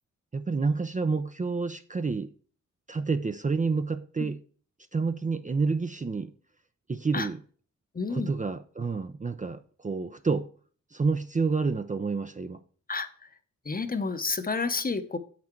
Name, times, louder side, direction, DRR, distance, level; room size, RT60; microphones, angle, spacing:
voice 1, 0.3-2.3 2.9-4.4 4.9-6.3 6.9-7.4 8.1-10.5 10.9-12.6, right 4 dB, 25° right, 0.5 m, -29 dB
voice 2, 7.9-8.3 12.9-13.3 13.6-15.2, left 4 dB, 30° left, 0.8 m, -30 dB
7.6 x 6.0 x 4.4 m
wide cardioid pair, 85°, 30 cm